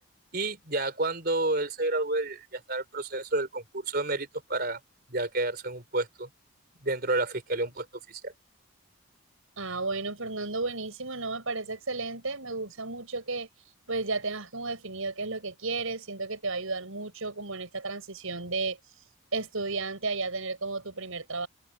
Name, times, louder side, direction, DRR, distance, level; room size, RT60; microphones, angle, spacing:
voice 1, 0.3-4.8 5.1-6.3 6.8-8.3, right 2 dB, 45° right, 3.8 m, -30 dB
voice 2, 9.6-13.5 13.9-18.8 19.3-21.5, right 3 dB, 85° right, 6.1 m, -33 dB
head